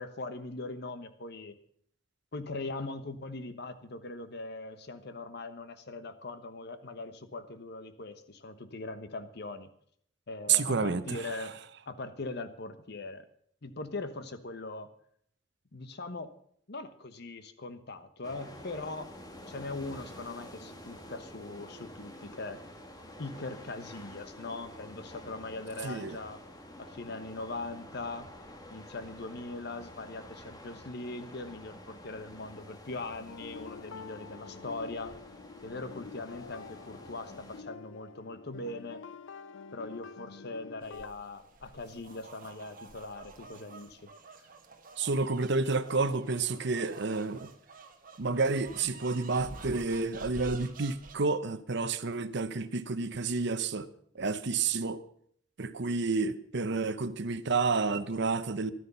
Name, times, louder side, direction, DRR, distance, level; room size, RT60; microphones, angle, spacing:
voice 1, 0.0-1.6 2.3-9.7 10.3-11.6 11.9-13.3 13.6-14.9 15.7-16.3 16.7-19.1 19.5-22.6 23.2-26.4 26.8-28.3 28.7-35.2 35.6-39.0 39.7-44.1, left 2 dB, 60° left, 1.2 m, -41 dB
voice 2, 10.5-11.5 25.8-26.2 45.0-47.5 48.2-53.9 54.1-55.0 55.6-58.7, right 4 dB, 65° right, 0.9 m, -30 dB
sound 1, 18.2-37.6, left 1 dB, 20° left, 1.9 m, -49 dB
sound 2, 33.3-41.1, left 5 dB, 75° left, 0.5 m, -47 dB
sound 3, 40.8-51.2, right 3 dB, 45° right, 1.4 m, -49 dB
13.5 x 12.5 x 5.6 m
head